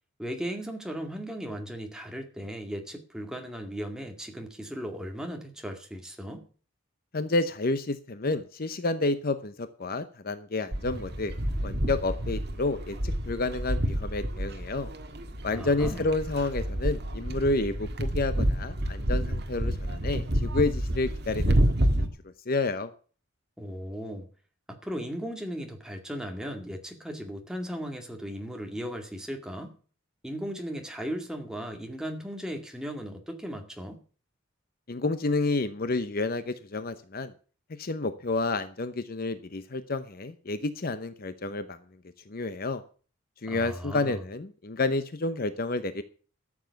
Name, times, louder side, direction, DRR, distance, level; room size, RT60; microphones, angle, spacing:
voice 1, 0.2-6.4 15.5-16.1 23.6-24.3 24.7-29.7 30.2-34.0 43.5-44.2, equal, 5° right, 3 dB, 2.1 m, -37 dB
voice 2, 7.1-11.3 11.6-14.9 15.4-21.6 22.5-22.9 34.9-37.3 37.8-41.8 42.3-42.8 43.4-46.0, left 2 dB, 45° left, 11 dB, 0.8 m, -30 dB
sound 1, 10.7-22.1, right 1 dB, 50° right, 1.6 m, -29 dB
13.0 x 7.4 x 7.0 m, 0.40 s
head